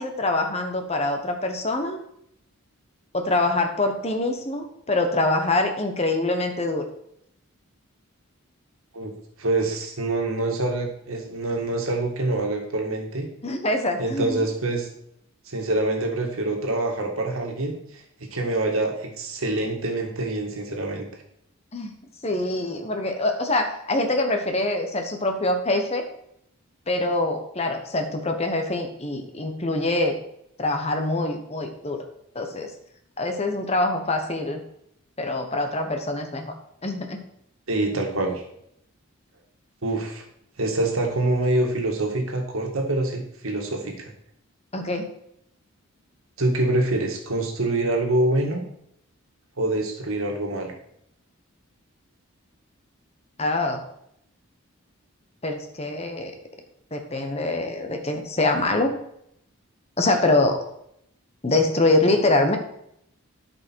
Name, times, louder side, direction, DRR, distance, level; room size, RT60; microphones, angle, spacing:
voice 1, 0.0-2.0 3.1-6.8 13.4-14.4 21.7-21.9 22.2-26.1 26.9-30.2 30.6-32.1 32.3-32.7 33.2-34.6 35.2-36.5 36.8-37.2 44.7-45.1 53.4-53.8 55.4-56.3 56.9-58.9 60.0-60.6 61.4-62.6, left 2 dB, 30° left, 5 dB, 1.0 m, -24 dB
voice 2, 9.4-13.3 14.0-14.9 15.5-18.0 18.3-21.1 37.7-38.4 39.8-40.2 40.6-44.1 46.4-48.6 49.6-50.7, right 2 dB, 75° right, 2 dB, 1.8 m, -25 dB
12.0 x 5.4 x 4.6 m, 0.74 s
head